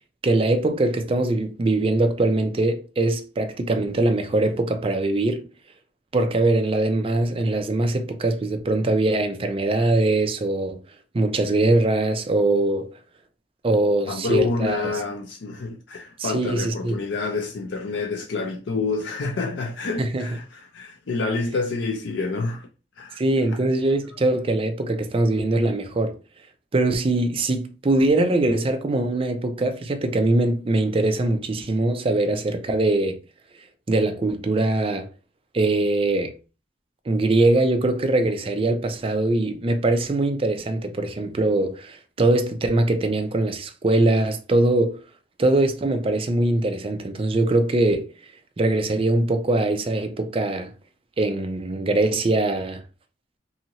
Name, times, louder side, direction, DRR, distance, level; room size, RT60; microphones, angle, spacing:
voice 1, 0.2-5.4 6.1-10.8 11.1-13.0 13.6-14.8 16.2-17.0 20.0-20.3 23.2-26.2 26.7-33.2 33.9-35.1 35.5-36.4 37.1-45.0 45.4-48.1 48.6-50.7 51.2-52.8, right 2 dB, 30° right, 0.4 m, -22 dB
voice 2, 14.1-22.7 23.0-23.2, left 4 dB, 80° left, 0.4 m, -28 dB
2.8 x 2.7 x 2.7 m
head